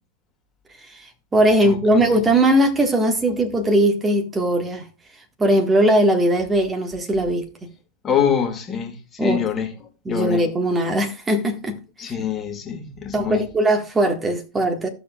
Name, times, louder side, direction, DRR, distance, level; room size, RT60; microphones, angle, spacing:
voice 1, 0.9-4.8 5.4-7.5 9.2-9.4 10.0-11.8 12.1-12.2 13.1-14.9, right 1 dB, 15° right, 1.5 m, -19 dB
voice 2, 1.6-2.2 8.0-9.7 10.1-10.4 12.0-13.5, left 8 dB, 25° left, 1.8 m, -25 dB
15.0 x 6.9 x 2.3 m
figure-of-eight pair, 90°, 0 cm